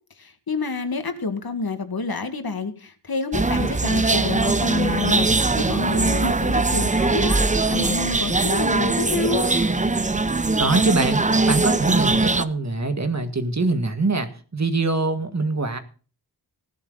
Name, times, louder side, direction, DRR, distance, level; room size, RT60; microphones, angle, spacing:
voice 1, 0.2-9.6, left 4 dB, 60° left, 8 dB, 2.0 m, -28 dB
sound 1, 3.3-12.4, right 3 dB, 20° right, 0.7 m, -21 dB
voice 2, 10.6-15.8, right 3 dB, 40° right, 8 dB, 1.8 m, -23 dB
16.5 x 11.5 x 4.0 m, 0.37 s
wide cardioid pair, 85°, 41 cm